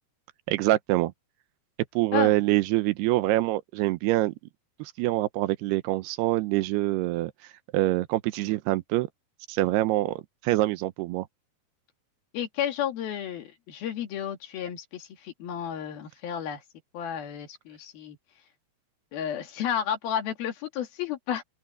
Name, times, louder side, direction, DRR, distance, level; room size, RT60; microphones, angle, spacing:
voice 1, 0.5-1.1 2.0-4.3 4.8-7.3 7.7-9.1 9.5-11.3, right 17 dB, 80° right, 2.7 m, -25 dB
voice 2, 12.3-16.6 16.9-18.2 19.1-21.4, left 9 dB, 65° left, 3.8 m, -32 dB
open air
omnidirectional pair, 4.7 m